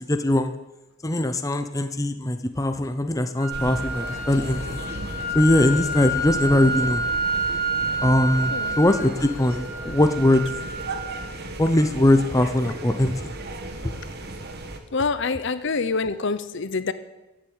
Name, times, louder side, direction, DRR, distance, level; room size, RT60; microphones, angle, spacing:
voice 1, 0.1-0.5 1.0-4.8 5.3-7.0 8.0-10.4 11.6-13.3, left 1 dB, 15° left, 7 dB, 0.7 m, -21 dB
sound 1, 3.4-11.4, right 1 dB, 40° left, 3.0 m, -29 dB
sound 2, 3.5-14.8, right 2 dB, 45° right, 1.4 m, -35 dB
voice 2, 14.9-16.9, left 4 dB, 55° left, 14 dB, 0.7 m, -26 dB
15.0 x 7.7 x 8.8 m, 1.0 s
head